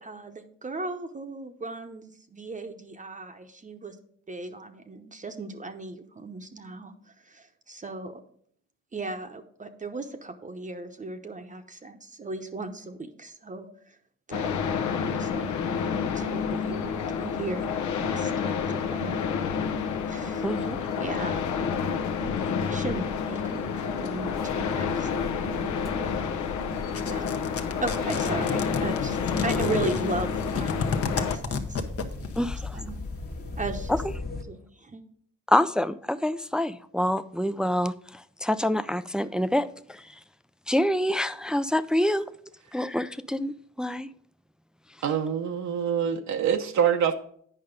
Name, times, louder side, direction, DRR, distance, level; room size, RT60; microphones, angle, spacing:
voice 1, 0.0-3.9 4.3-6.9 7.2-8.2 8.9-14.0 14.3-14.5 15.1-15.5 16.1-16.9 17.2-19.3 20.1-20.5 21.0-21.4 22.4-25.7 26.0-26.4 27.0-27.5 27.8-31.8 32.7-33.0 33.6-34.0 34.5-35.0, right 3 dB, 25° right, 6 dB, 0.8 m, -37 dB
sound 1, 14.3-31.4, left 6 dB, 75° left, 0.9 m, -29 dB
voice 2, 20.4-20.8 32.4-32.8 33.9-34.0 35.5-40.0 40.7-42.2 42.7-44.1, left 1 dB, 5° right, 13 dB, 0.3 m, -26 dB
sound 2, 24.3-34.4, left 3 dB, 30° left, 1.3 m, -39 dB
sound 3, 26.9-32.4, left 5 dB, 50° left, 1.0 m, -30 dB
voice 3, 45.0-47.1, right 8 dB, 70° right, 4 dB, 0.8 m, -25 dB
8.8 x 5.4 x 5.1 m, 0.62 s
cardioid pair, 90°, 30 cm